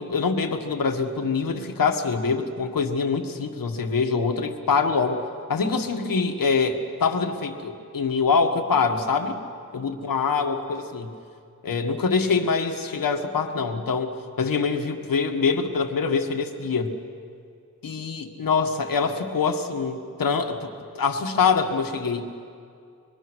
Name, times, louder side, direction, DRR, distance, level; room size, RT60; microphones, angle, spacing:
voice 1, 0.0-5.2 5.5-9.4 9.7-11.1 11.6-14.1 14.4-17.0 17.8-20.7 20.9-22.3, left 5 dB, 90° left, 4 dB, 1.8 m, -24 dB
26.0 x 22.0 x 6.3 m, 2.4 s
wide cardioid pair, 125°, 33 cm